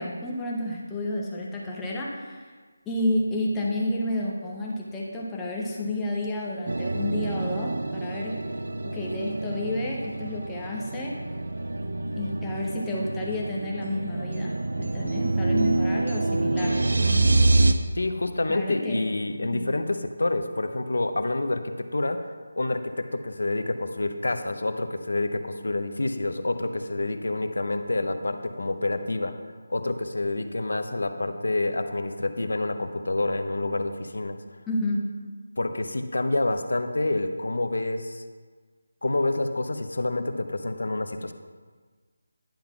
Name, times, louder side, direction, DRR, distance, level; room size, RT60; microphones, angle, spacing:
voice 1, 0.0-2.5 2.9-8.3 8.8-11.1 12.2-17.3 18.5-19.1 19.5-19.7 34.7-35.0, left 1 dB, 5° left, -3 dB, 0.5 m, -30 dB
sound 1, 6.7-17.7, right 2 dB, 70° right, 0.5 m, -26 dB
voice 2, 17.9-29.4 29.7-34.4 35.6-38.2 39.0-41.3, left 2 dB, 75° left, 8 dB, 0.7 m, -28 dB
10.0 x 3.8 x 5.9 m, 1.5 s
figure-of-eight pair, 180°, 0 cm